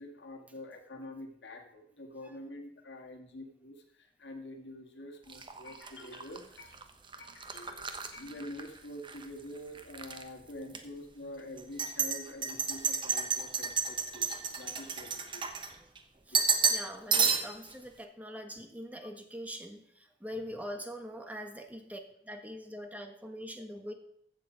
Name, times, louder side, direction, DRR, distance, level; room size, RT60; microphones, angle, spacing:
voice 1, 0.0-6.9 7.2-15.7 16.3-16.4 21.1-21.2, left 1 dB, 90° left, 3 dB, 1.8 m, -46 dB
sound 1, 5.3-9.3 9.6-10.2 10.7-10.8 11.6-16.0 16.3-16.9 17.1-17.7, right 5 dB, 30° right, 1.0 m, -32 dB
voice 2, 16.7-23.9, equal, 10° right, 5 dB, 1.3 m, -43 dB
15.0 x 6.8 x 5.2 m, 0.69 s
head